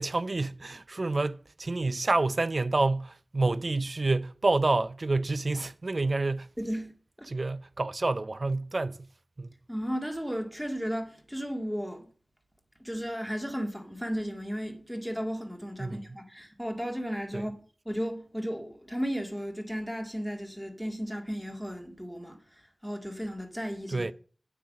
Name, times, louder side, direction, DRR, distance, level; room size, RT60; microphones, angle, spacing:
voice 1, 0.0-6.5 7.3-9.1 9.4-9.5 15.8-16.0 17.3-17.5 23.9-24.1, right 2 dB, 50° right, 0.5 m, -28 dB
voice 2, 6.6-6.9 7.2-7.3 9.7-12.1 12.8-17.6 17.9-22.4 22.8-24.1, equal, 5° right, 1.8 m, -34 dB
9.4 x 6.0 x 7.2 m
wide cardioid pair, 80°, 0 cm